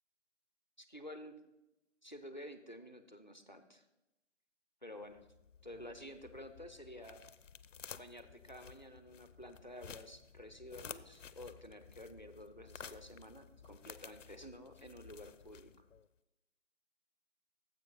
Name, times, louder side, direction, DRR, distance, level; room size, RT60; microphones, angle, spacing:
voice 1, 0.8-1.4 2.0-3.8 4.8-5.3 5.6-7.2 8.0-15.9, left 1 dB, 40° left, 8 dB, 0.5 m, -51 dB
sound 1, 5.0-16.1, left 7 dB, 90° left, 0.5 m, -54 dB
10.5 x 7.4 x 3.8 m, 0.98 s
figure-of-eight pair, 180°, 36 cm